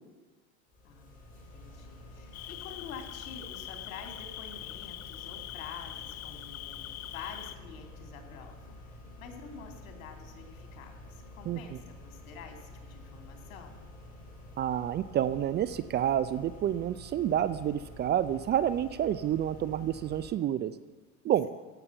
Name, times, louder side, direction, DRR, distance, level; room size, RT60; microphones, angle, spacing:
sound 1, 0.7-20.3, left 1 dB, 20° left, 4.5 m, -49 dB
voice 1, 1.5-8.8 9.2-13.8, left 6 dB, 85° left, 3 dB, 3.0 m, -47 dB
Cricket, 2.3-7.6, left 14 dB, 40° left, 0.6 m, -43 dB
voice 2, 14.6-20.7 21.2-21.5, right 10 dB, 25° right, 15 dB, 0.4 m, -29 dB
16.0 x 6.8 x 8.7 m, 1.3 s
supercardioid pair, 120°, 41 cm